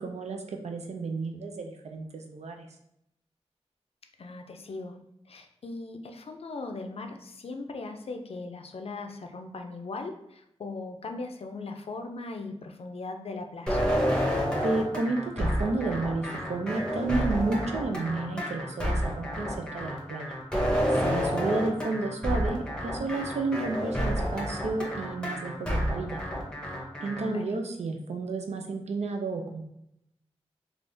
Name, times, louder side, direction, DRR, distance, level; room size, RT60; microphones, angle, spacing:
voice 1, 0.0-2.7 14.6-20.3 20.9-26.2 27.0-29.6, right 3 dB, 90° right, 3 dB, 0.4 m, -31 dB
voice 2, 4.2-5.0 5.3-13.9 27.2-27.6, left 3 dB, 65° left, 5 dB, 0.4 m, -39 dB
sound 1, 13.7-27.3, equal, 10° left, 0.8 m, -29 dB
3.4 x 2.4 x 2.6 m, 0.79 s
cardioid pair, 50°, 11 cm